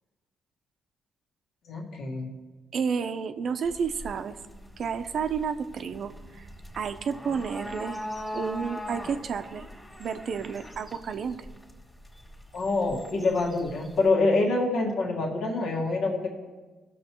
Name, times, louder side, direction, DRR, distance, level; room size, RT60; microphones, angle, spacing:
voice 1, 1.7-2.3 12.5-16.3, left 3 dB, 70° left, -1 dB, 1.9 m, -26 dB
voice 2, 2.7-4.4 4.8-6.5 6.7-8.0 8.3-9.7 10.0-11.5, right 6 dB, 60° right, 9 dB, 0.7 m, -31 dB
sound 1, 3.6-14.1, left 1 dB, 10° left, 2.0 m, -41 dB
18.0 x 6.5 x 3.0 m, 1.3 s
cardioid pair, 90°, 0 cm